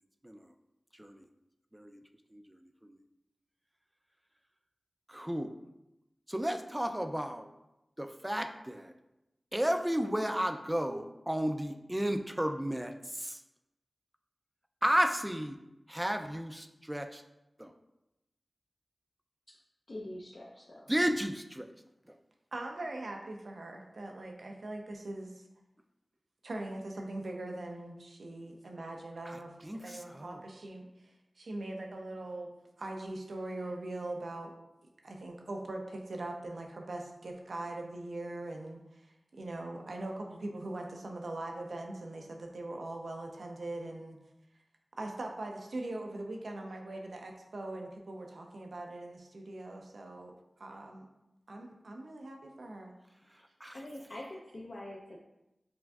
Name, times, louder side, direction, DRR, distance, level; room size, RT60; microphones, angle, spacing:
voice 1, 0.9-1.2 1.7-2.0 2.3-3.0 5.1-5.6 6.3-7.5 8.0-8.9 9.5-13.4 14.8-15.6 15.9-17.2 17.6-17.7 20.9-21.7 22.1-22.2 29.3-30.4 53.3-53.8, equal, 10° right, 7 dB, 0.3 m, -33 dB
voice 2, 19.9-20.9 53.7-55.2, left 1 dB, 60° left, -4 dB, 0.5 m, -44 dB
voice 3, 22.5-25.4 26.4-29.5 29.8-31.1 31.4-32.5 32.8-34.6 35.0-44.2 45.0-51.1 51.5-52.9, right 2 dB, 80° right, 2 dB, 0.5 m, -41 dB
5.9 x 2.5 x 2.3 m, 0.93 s
wide cardioid pair, 60°, 0 cm